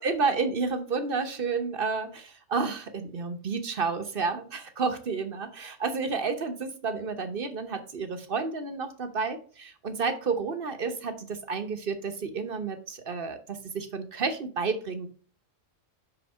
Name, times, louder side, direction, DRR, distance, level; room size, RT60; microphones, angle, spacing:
voice 1, 0.0-15.1, right 4 dB, 45° right, 8 dB, 1.1 m, -31 dB
5.8 x 5.5 x 5.5 m, 0.41 s
omnidirectional pair, 1.3 m